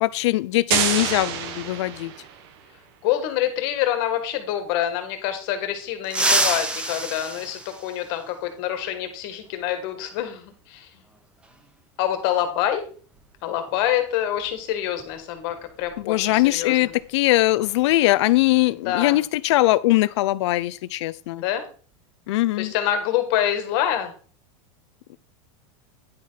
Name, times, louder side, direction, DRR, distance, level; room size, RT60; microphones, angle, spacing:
voice 1, 0.0-2.1 16.0-21.4 22.3-22.7, left 17 dB, 60° left, 0.6 m, -21 dB
sound 1, 0.7-2.5, right 8 dB, 50° right, 1.3 m, -26 dB
voice 2, 3.0-10.9 12.0-12.9 13.4-16.9 18.9-19.2 21.4-21.7 22.6-24.1, left 11 dB, 45° left, 1.9 m, -26 dB
sound 2, 6.0-8.5 10.1-10.2 11.4-11.5 13.2-13.3 13.7-13.9 14.4-16.6 16.8-17.1 17.5-17.9, right 2 dB, 5° right, 0.7 m, -27 dB
10.0 x 4.6 x 5.8 m
supercardioid pair, 175°, 16 cm